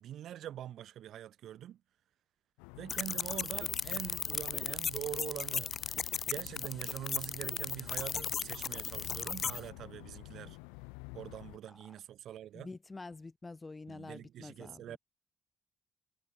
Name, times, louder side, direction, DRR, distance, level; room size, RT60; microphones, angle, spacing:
voice 1, 0.0-1.8 2.8-5.7 6.3-10.6 11.1-12.7 13.9-15.0, right 11 dB, 60° right, 0.7 m, -44 dB
sound 1, 2.6-11.6, left 37 dB, 75° left, 5.5 m, -50 dB
sound 2, 2.9-9.6, left 6 dB, 45° left, 0.4 m, -36 dB
voice 2, 12.5-15.0, left 3 dB, 25° left, 4.0 m, -47 dB
figure-of-eight pair, 40°, 0 cm